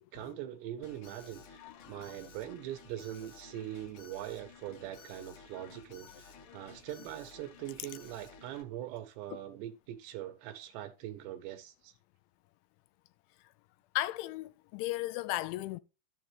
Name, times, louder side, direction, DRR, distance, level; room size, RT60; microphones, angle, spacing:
voice 1, 0.0-1.6 1.9-12.0, right 12 dB, 80° right, 2.8 m, -42 dB
Alarm, 0.8-8.6, left 5 dB, 60° left, 2.3 m, -55 dB
voice 2, 1.6-2.0 6.5-6.6 14.0-15.8, left 17 dB, 85° left, 3.0 m, -36 dB
12.5 x 7.3 x 3.1 m
omnidirectional pair, 5.3 m